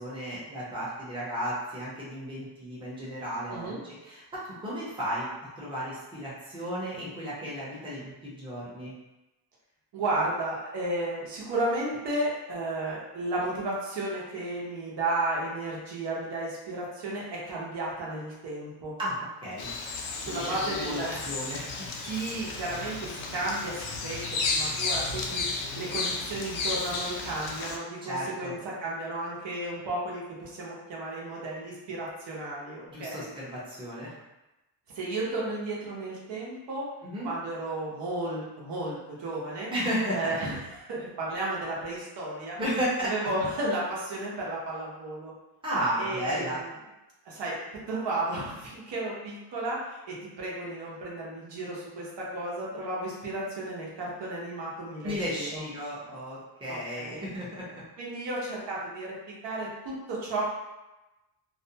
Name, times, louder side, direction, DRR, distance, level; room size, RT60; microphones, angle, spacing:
voice 1, 0.0-5.3 5.6-8.9 19.0-19.7 20.3-21.7 28.0-28.5 32.9-34.1 37.0-37.3 39.7-40.4 42.6-43.1 45.6-46.6 55.0-57.8, equal, 10° right, -9 dB, 0.7 m, -33 dB
voice 2, 9.9-18.9 20.2-21.3 22.0-25.5 25.7-33.3 34.9-36.9 37.2-39.7 40.1-42.6 43.0-45.3 46.0-46.7 47.2-55.6 56.7-57.3 58.0-60.4, right 2 dB, 65° right, -5 dB, 0.9 m, -33 dB
Bird vocalization bird call bird song, 19.6-27.8, left 4 dB, 85° left, 0.6 m, -33 dB
2.5 x 2.2 x 2.7 m, 1.0 s
cardioid pair, 145°, 46 cm